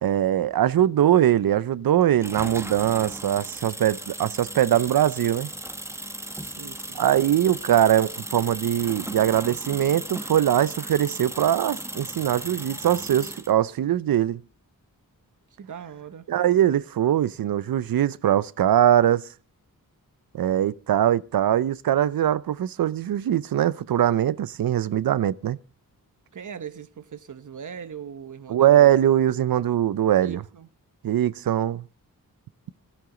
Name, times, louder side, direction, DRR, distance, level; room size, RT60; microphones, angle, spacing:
voice 1, 0.0-5.5 7.0-14.4 16.3-19.3 20.3-25.6 28.5-30.4 31.0-31.8, right 11 dB, 80° right, 0.6 m, -21 dB
sound 1, 2.2-13.5, right 1 dB, 10° right, 0.9 m, -36 dB
voice 2, 6.4-7.1 15.6-16.3 26.3-29.0 30.1-30.7, right 7 dB, 60° right, 1.0 m, -40 dB
17.0 x 12.5 x 3.8 m
wide cardioid pair, 115°, 34 cm